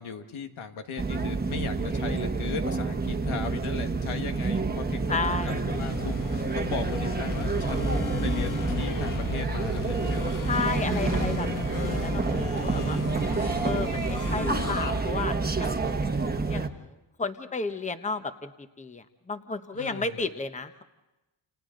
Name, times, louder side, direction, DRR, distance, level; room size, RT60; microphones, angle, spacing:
voice 1, 0.0-10.4 12.3-13.1 19.7-20.2, left 5 dB, 80° left, 6 dB, 1.8 m, -37 dB
sound 1, 1.0-16.7, right 3 dB, 20° right, 1.2 m, -28 dB
voice 2, 5.1-5.6 10.5-13.0 13.6-15.7 16.5-18.5 18.8-20.8, left 4 dB, 15° left, 9 dB, 1.0 m, -33 dB
sound 2, 5.5-15.0, left 4 dB, 40° left, 1.6 m, -35 dB
29.0 x 29.0 x 3.9 m, 0.99 s
cardioid pair, 105°, 49 cm